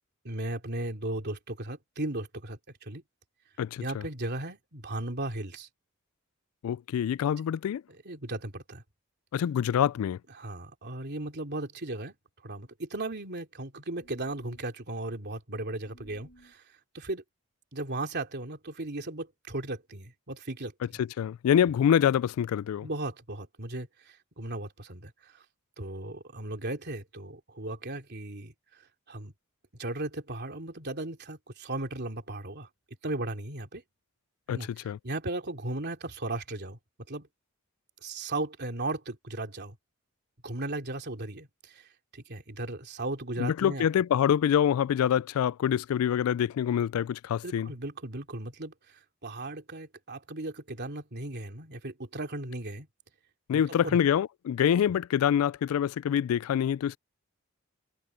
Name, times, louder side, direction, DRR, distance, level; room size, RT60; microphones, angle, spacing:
voice 1, 0.2-3.0 3.8-5.7 7.9-8.8 10.3-12.1 12.4-16.6 16.9-17.2 17.7-21.0 22.8-25.4 25.8-28.5 29.1-29.3 29.8-32.7 33.0-33.8 34.5-36.8 37.1-37.3 38.0-39.8 40.4-43.8 47.4-52.9 53.5-54.0, right 2 dB, 50° right, 3.2 m, -36 dB
voice 2, 3.6-4.0 6.6-7.8 9.3-10.2 21.0-22.9 34.5-34.6 34.8-35.0 43.4-47.7 53.5-57.0, left 9 dB, 80° left, 0.3 m, -26 dB
sound 1, 13.9-14.7 15.8-16.5, equal, 55° left, 3.5 m, -58 dB
head